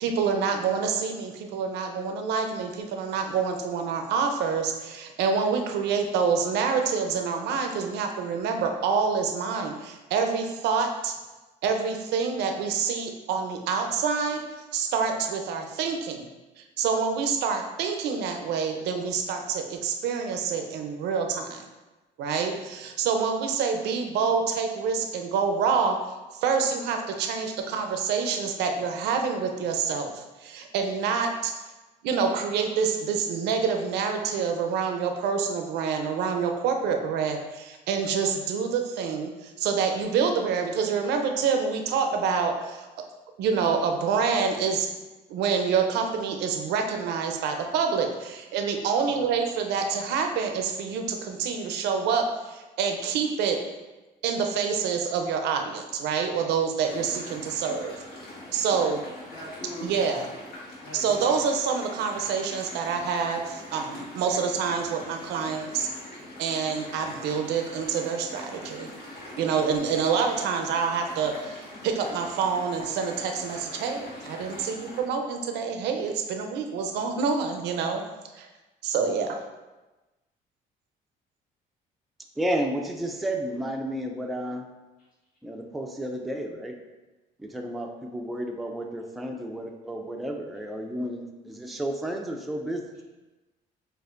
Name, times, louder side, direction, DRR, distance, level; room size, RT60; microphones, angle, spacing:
voice 1, 0.0-11.1 11.6-14.4 14.7-16.3 16.6-21.6 22.2-26.0 26.4-31.5 32.0-42.9 43.4-44.9 45.3-53.6 54.2-57.9 58.5-59.0 59.8-60.3 60.9-65.9 66.4-68.9 69.4-78.0 78.4-78.5 78.8-79.4, right 5 dB, 80° right, 4 dB, 0.6 m, -27 dB
sound 1, 56.8-75.0, left 1 dB, 85° left, 1.5 m, -43 dB
voice 2, 59.3-60.1 60.8-61.3, equal, 55° left, -5 dB, 1.5 m, -41 dB
voice 3, 82.4-84.7 85.4-86.8 87.4-92.9, right 1 dB, ahead, 2 dB, 0.4 m, -32 dB
6.5 x 2.5 x 2.4 m, 1.1 s
cardioid pair, 110°, 17 cm